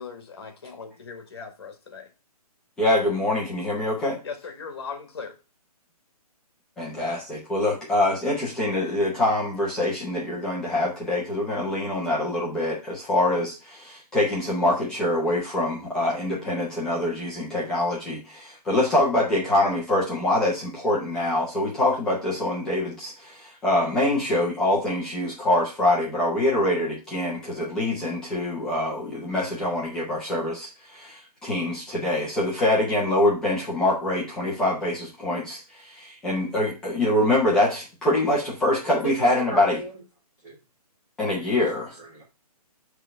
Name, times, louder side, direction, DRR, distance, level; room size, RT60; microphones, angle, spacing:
voice 1, 0.0-2.1 4.2-5.4, left 5 dB, 40° left, 1.5 m, -38 dB
voice 2, 2.8-4.2 6.8-39.8 41.2-41.9, left 1 dB, 5° left, 0.7 m, -24 dB
voice 3, 39.0-39.9 40.4-40.6 41.3-42.2, right 2 dB, 15° right, 1.4 m, -36 dB
7.4 x 3.4 x 5.4 m
hypercardioid pair, 175°, 20 cm